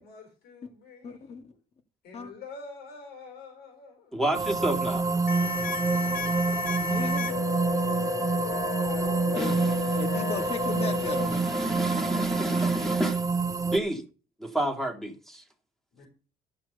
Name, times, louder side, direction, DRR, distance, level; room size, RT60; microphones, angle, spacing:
voice 1, 0.0-1.5 2.0-4.1 5.3-6.7 8.4-9.4 15.9-16.1, left 3 dB, 75° left, 4.8 m, -47 dB
voice 2, 1.0-1.5 2.1-2.3 6.8-7.5 9.3-9.6 10.0-11.5, left 5 dB, 40° left, 2.0 m, -36 dB
voice 3, 4.1-5.1 9.4-10.0 10.9-13.3 13.6-14.1 14.4-15.4, right 1 dB, ahead, 2.0 m, -30 dB
sound 1, 4.3-13.8, right 4 dB, 20° right, 0.8 m, -27 dB
sound 2, 5.3-11.3, left 10 dB, 55° left, 0.9 m, -34 dB
12.0 x 6.0 x 6.7 m
cardioid pair, 110°, 17 cm